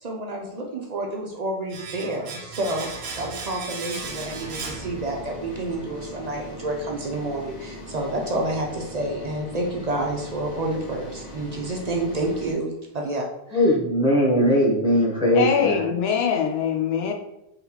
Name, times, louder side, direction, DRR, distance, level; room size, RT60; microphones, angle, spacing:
voice 1, 0.0-13.7, right 2 dB, 45° right, 1 dB, 0.6 m, -29 dB
Domestic sounds home sounds, 1.7-5.5 5.8-5.9, right 4 dB, 75° right, 0.9 m, -36 dB
sound 1, 3.9-12.5, equal, 40° left, 1.0 m, -40 dB
voice 2, 13.5-15.9, equal, 5° right, -3 dB, 0.6 m, -20 dB
voice 3, 15.3-17.1, left 7 dB, 75° left, 3 dB, 0.9 m, -23 dB
3.7 x 3.5 x 2.9 m, 0.86 s
omnidirectional pair, 1.1 m